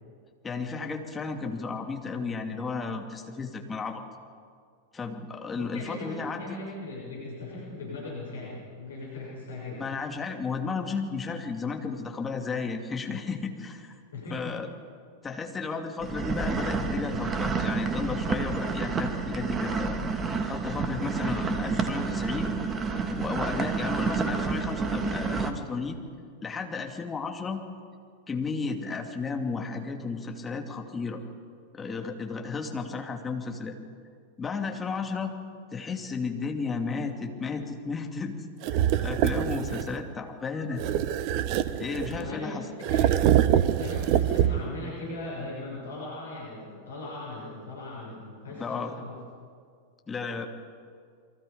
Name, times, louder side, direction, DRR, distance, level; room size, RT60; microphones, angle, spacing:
voice 1, 0.4-4.0 4.9-6.6 9.8-13.9 14.3-14.7 15.2-20.0 20.5-22.5 23.1-26.0 26.4-27.6 28.3-31.2 31.7-33.8 34.4-35.3 35.7-38.4 38.7-40.8 41.7-42.6 48.5-48.9 50.1-50.5, left 4 dB, 15° left, 3 dB, 2.6 m, -33 dB
voice 2, 5.5-9.8 14.1-14.5 42.1-42.5 42.9-43.2 43.8-49.2, left 2 dB, 65° left, -4 dB, 6.8 m, -39 dB
sound 1, 16.0-25.5, right 4 dB, 20° right, 2.1 m, -29 dB
sound 2, 38.6-40.0 40.8-42.3 42.8-44.8, right 11 dB, 45° right, 1.0 m, -24 dB
29.5 x 23.0 x 5.2 m, 2.2 s
figure-of-eight pair, 90°, 0 cm